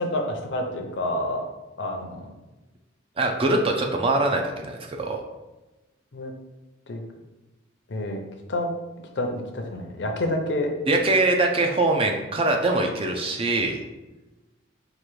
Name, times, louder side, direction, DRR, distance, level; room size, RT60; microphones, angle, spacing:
voice 1, 0.0-1.4 1.8-2.3 6.1-6.3 6.9-7.0 7.9-8.2 8.5-8.7 9.2-10.7, left 1 dB, 60° left, 3 dB, 0.6 m, -28 dB
voice 2, 3.2-5.2 10.9-13.8, right 2 dB, 30° right, 2 dB, 0.4 m, -23 dB
4.9 x 2.5 x 3.1 m, 1.1 s
head